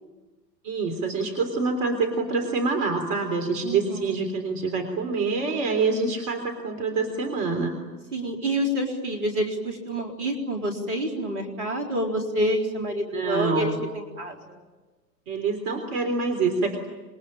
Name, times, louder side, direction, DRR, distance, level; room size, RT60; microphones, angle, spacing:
voice 1, 0.6-7.8 13.1-13.9 15.3-16.8, right 4 dB, 45° right, 5 dB, 3.5 m, -26 dB
voice 2, 3.6-4.1 8.1-14.6, equal, 60° right, 2 dB, 4.2 m, -28 dB
27.0 x 22.5 x 8.9 m, 1.3 s
figure-of-eight pair, 95°, 50 cm